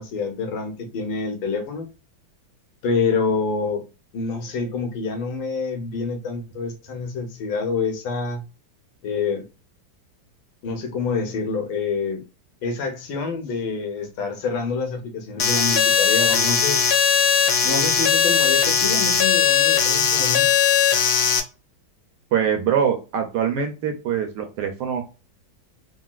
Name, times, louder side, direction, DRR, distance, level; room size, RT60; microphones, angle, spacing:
voice 1, 0.0-1.9 2.8-3.9 4.1-8.4 9.0-9.4 10.6-12.3 12.6-16.8 17.6-20.5, left 4 dB, 80° left, 1.6 m, -27 dB
sound 1, 15.4-21.4, left 7 dB, 65° left, 1.0 m, -19 dB
voice 2, 22.3-25.0, right 8 dB, 70° right, 1.0 m, -23 dB
3.9 x 2.3 x 2.2 m
omnidirectional pair, 2.2 m